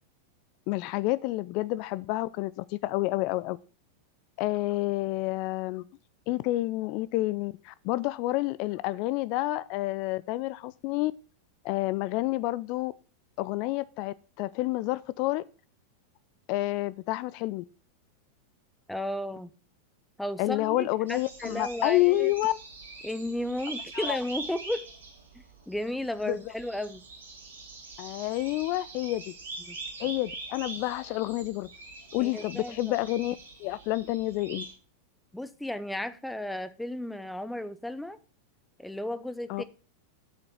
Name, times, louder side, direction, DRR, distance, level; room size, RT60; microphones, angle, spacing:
voice 1, 0.7-3.6 4.4-5.8 6.3-11.1 11.6-12.9 13.4-15.4 16.5-17.6 20.4-22.6 23.9-24.2 26.3-26.4 28.0-29.3 30.0-31.7 32.1-34.7 39.5-39.6, left 18 dB, 45° left, 0.4 m, -29 dB
voice 2, 18.9-19.5 20.2-22.3 23.0-24.9 25.7-27.0 29.6-29.8 32.2-32.8 35.3-38.2 38.8-39.6, left 1 dB, 5° left, 0.8 m, -34 dB
sound 1, 21.1-34.7, right 3 dB, 70° right, 4.1 m, -43 dB
8.4 x 6.9 x 6.7 m
figure-of-eight pair, 90°, 0 cm